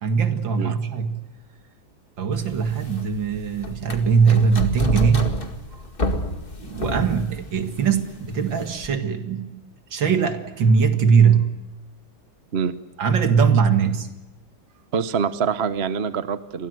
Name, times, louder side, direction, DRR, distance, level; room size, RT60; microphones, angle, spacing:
voice 1, 0.0-1.3 2.2-5.4 5.7-5.8 6.6-9.6 9.9-11.6 13.0-14.1, right 6 dB, 70° right, 8 dB, 2.5 m, -20 dB
sound 1, 2.4-9.0, left 1 dB, 25° left, 2.1 m, -30 dB
voice 2, 14.9-16.7, right 6 dB, 40° right, 12 dB, 1.0 m, -25 dB
30.0 x 23.0 x 7.9 m, 1.1 s
omnidirectional pair, 2.2 m